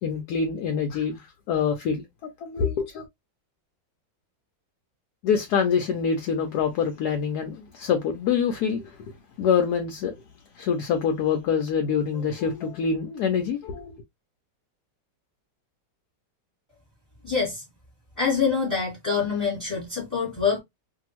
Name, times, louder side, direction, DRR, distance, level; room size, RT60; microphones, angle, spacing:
voice 1, 0.0-2.0 2.4-3.0 5.2-9.0 9.4-10.1 10.6-14.0, left 6 dB, 70° left, 1.0 m, -25 dB
voice 2, 17.2-17.6 18.2-20.6, left 5 dB, 10° left, 1.3 m, -25 dB
2.7 x 2.6 x 2.8 m
omnidirectional pair, 1.9 m